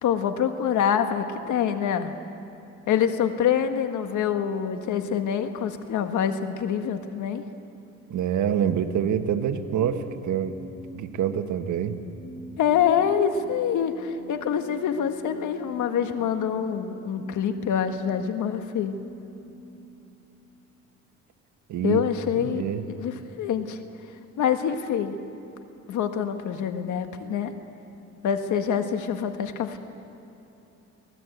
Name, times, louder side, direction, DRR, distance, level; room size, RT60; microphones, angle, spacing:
voice 1, 0.0-2.1 2.9-7.4 12.6-18.9 21.8-22.7 22.9-23.8 24.4-25.2 25.9-27.5 28.2-29.8, left 8 dB, 80° left, 7 dB, 1.7 m, -25 dB
voice 2, 8.1-10.5 10.9-12.0 21.7-22.0 22.4-22.8, right 9 dB, 75° right, 8 dB, 1.5 m, -26 dB
sound 1, 8.3-20.5, equal, 25° right, 7.5 m, -45 dB
24.5 x 18.0 x 8.0 m, 2.9 s
cardioid pair, 90°, 30 cm